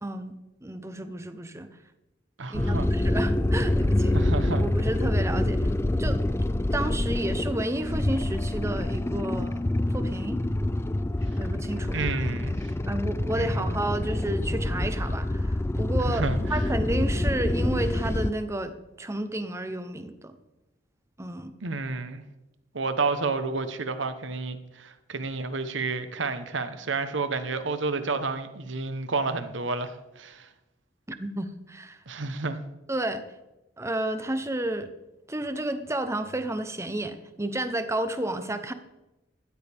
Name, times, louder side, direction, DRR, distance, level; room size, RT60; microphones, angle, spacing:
voice 1, 0.0-0.4 0.6-1.7 2.5-4.2 4.6-5.7 6.0-6.2 6.7-10.4 11.3-12.0 12.9-16.2 16.5-20.4 21.2-21.5 31.1-32.0 32.9-33.3 33.8-34.9 35.3-38.7, right 1 dB, 15° right, 10 dB, 0.8 m, -31 dB
voice 2, 2.4-2.9 4.1-4.6 11.9-12.7 13.3-13.7 16.1-16.6 21.6-22.2 22.7-30.5 32.1-32.6, right 3 dB, 70° right, 10 dB, 1.1 m, -30 dB
sound 1, 2.5-18.3, left 1 dB, 15° left, 0.3 m, -26 dB
14.5 x 13.0 x 3.5 m, 0.98 s
head